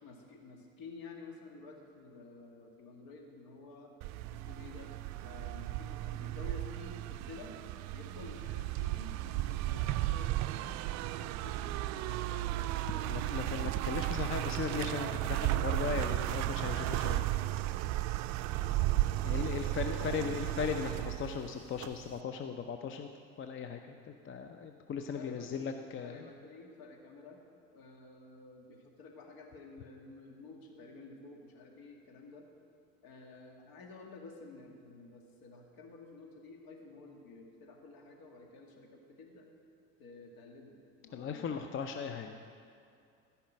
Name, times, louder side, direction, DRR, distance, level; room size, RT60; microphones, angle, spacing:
voice 1, 0.0-3.9 4.3-4.9 5.2-7.5 7.9-13.4 18.5-20.5 25.1-27.4 27.7-32.5 33.0-39.5 40.0-40.8 41.0-41.9, left 3 dB, 60° left, 1 dB, 2.2 m, -51 dB
sound 1, 4.0-22.2, right 15 dB, 45° right, 0.5 m, -34 dB
voice 2, 13.0-17.3 19.2-23.1 23.4-23.8 24.1-26.3 41.1-42.4, left 7 dB, 30° left, 6 dB, 0.7 m, -38 dB
14.0 x 5.8 x 7.5 m, 2.4 s
hypercardioid pair, 80°, 40 cm